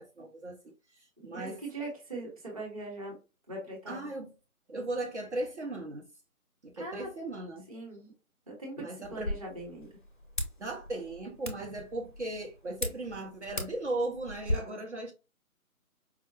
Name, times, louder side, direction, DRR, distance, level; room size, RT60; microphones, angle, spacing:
voice 1, 0.0-1.6 3.9-4.3 4.7-6.1 6.6-7.7 8.8-9.3 10.6-15.1, right 2 dB, 55° right, 0.7 m, -37 dB
voice 2, 1.3-3.2 3.5-4.1 6.8-7.1 7.7-8.1 8.5-9.9, right 2 dB, 25° right, 0.9 m, -41 dB
sound 1, 9.0-14.5, left 1 dB, 35° left, 0.5 m, -38 dB
4.7 x 2.1 x 2.3 m
figure-of-eight pair, 155°, 44 cm